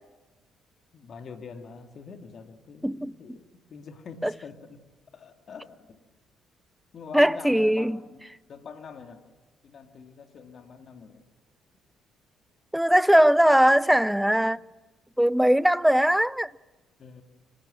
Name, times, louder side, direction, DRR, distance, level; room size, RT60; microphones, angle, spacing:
voice 1, 0.9-4.8 5.1-6.0 6.9-9.3 9.6-11.2 17.0-17.2, left 5 dB, 55° left, 2.3 m, -45 dB
voice 2, 7.1-8.0 12.7-14.6 15.2-16.5, equal, 5° right, 0.6 m, -20 dB
26.0 x 16.5 x 7.4 m
hypercardioid pair, 50°, 0 cm